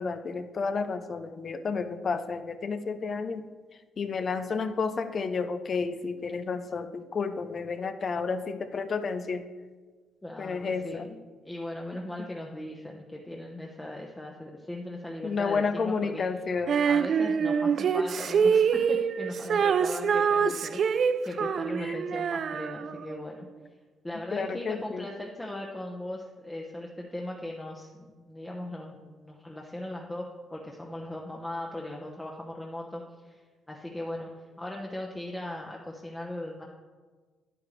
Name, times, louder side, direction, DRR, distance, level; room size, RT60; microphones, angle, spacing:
voice 1, 0.0-3.4 4.0-9.5 10.4-11.1 15.2-16.8 20.4-20.6 21.8-22.0 24.3-25.1, left 5 dB, 45° left, 10 dB, 0.5 m, -31 dB
voice 2, 10.2-11.2 11.4-16.2 16.9-23.5 24.0-36.6, left 1 dB, 10° left, -1 dB, 0.9 m, -38 dB
Female singing, 16.7-23.2, right 6 dB, 55° right, 0.3 m, -25 dB
9.6 x 8.7 x 3.2 m, 1.4 s
cardioid pair, 90°, 0 cm